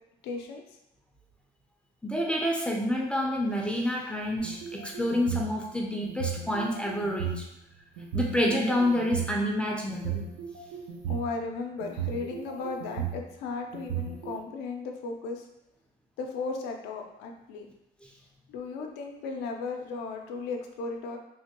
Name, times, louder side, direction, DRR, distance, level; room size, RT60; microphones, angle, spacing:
voice 1, 0.2-0.6 11.1-15.4 16.2-17.7 18.5-21.2, left 4 dB, 90° left, 3 dB, 0.5 m, -35 dB
voice 2, 2.0-7.4 8.1-10.2 18.0-18.1, left 1 dB, 5° left, 0 dB, 0.4 m, -28 dB
sound 1, 4.4-5.5 6.0-7.3 8.0-9.3 9.9-11.3 11.8-13.2 13.7-14.4, right 9 dB, 80° right, 0.6 m, -34 dB
3.2 x 2.2 x 2.9 m, 0.86 s
cardioid pair, 110°, 17 cm